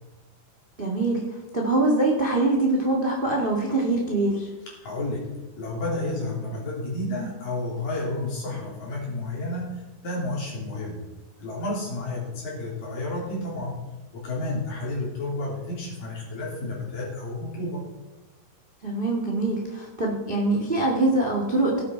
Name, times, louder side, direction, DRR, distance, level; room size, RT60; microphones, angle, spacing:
voice 1, 0.8-1.2 1.5-4.5 18.8-21.8, right 2 dB, 40° right, 0 dB, 0.7 m, -23 dB
voice 2, 4.8-5.3 5.6-11.0 11.4-13.8 14.1-17.8, left 2 dB, 60° left, -4 dB, 4.8 m, -31 dB
16.5 x 8.5 x 4.6 m, 1.1 s
omnidirectional pair, 4.5 m